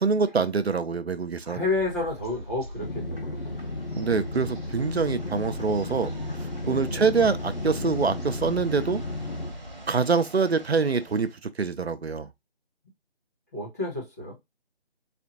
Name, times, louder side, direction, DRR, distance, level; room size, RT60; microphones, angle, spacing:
voice 1, 0.0-1.6 4.0-6.1 6.7-9.0 9.9-12.3, right 5 dB, 80° right, 0.6 m, -25 dB
voice 2, 1.4-3.4 6.6-7.0 13.5-14.4, left 2 dB, 15° left, 1.1 m, -30 dB
sound 1, 1.6-10.0, left 1 dB, 25° right, 1.6 m, -42 dB
sound 2, 2.8-9.5, left 2 dB, 60° left, 0.9 m, -34 dB
sound 3, 3.3-11.4, right 2 dB, 45° right, 1.4 m, -46 dB
4.2 x 2.6 x 2.8 m
figure-of-eight pair, 160°, 31 cm